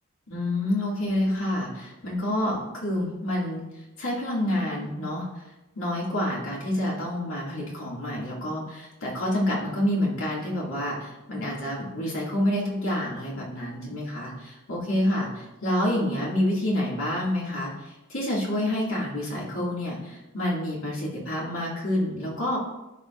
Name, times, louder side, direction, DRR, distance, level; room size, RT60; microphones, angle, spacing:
voice 1, 0.3-3.6 4.0-5.3 5.7-22.6, left 1 dB, 75° left, -4 dB, 2.3 m, -28 dB
13.5 x 5.1 x 2.5 m, 1.0 s
head